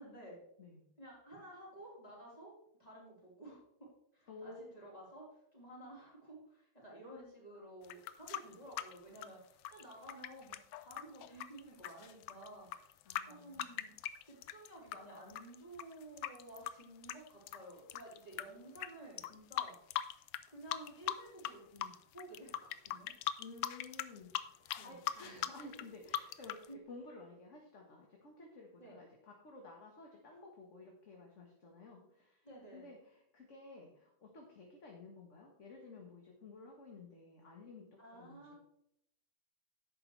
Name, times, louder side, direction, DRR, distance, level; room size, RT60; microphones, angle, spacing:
voice 1, 0.0-0.4 1.0-2.5 2.8-3.6 4.1-5.3 5.5-12.9 13.3-13.9 14.2-19.8 20.5-23.1 24.8-25.4 26.7-26.8 28.8-29.0 32.4-32.9 38.0-38.6, right 1 dB, 20° left, -5 dB, 4.3 m, -53 dB
voice 2, 4.3-4.7 13.0-13.9 23.4-26.6 26.9-32.5 32.7-38.6, left 3 dB, 40° left, 0 dB, 1.7 m, -53 dB
sound 1, 7.8-15.0 15.3-18.4 18.8-18.9 19.2-20.4 20.7-21.5 21.8-26.7, left 12 dB, 85° left, 1.4 m, -40 dB
11.5 x 8.8 x 3.3 m, 0.75 s
omnidirectional pair, 2.2 m